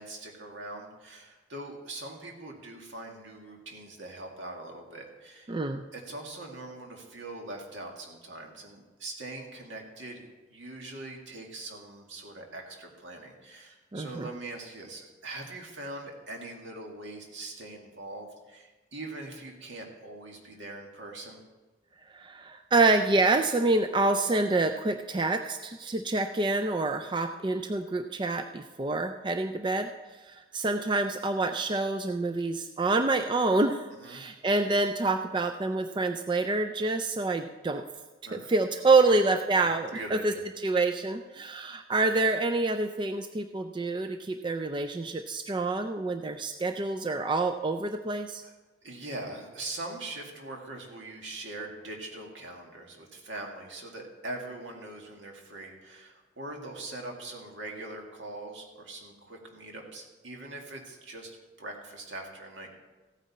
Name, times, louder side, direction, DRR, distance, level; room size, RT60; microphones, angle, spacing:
voice 1, 0.0-5.6 5.9-21.4 33.9-34.3 38.2-38.5 39.6-40.4 48.4-48.5 48.8-62.7, right 2 dB, 70° right, 1 dB, 2.0 m, -42 dB
voice 2, 5.5-5.8 13.9-14.3 22.1-37.8 38.3-40.3 40.6-48.4, right 3 dB, 25° right, 7 dB, 0.4 m, -27 dB
15.0 x 9.1 x 4.2 m, 1.2 s
head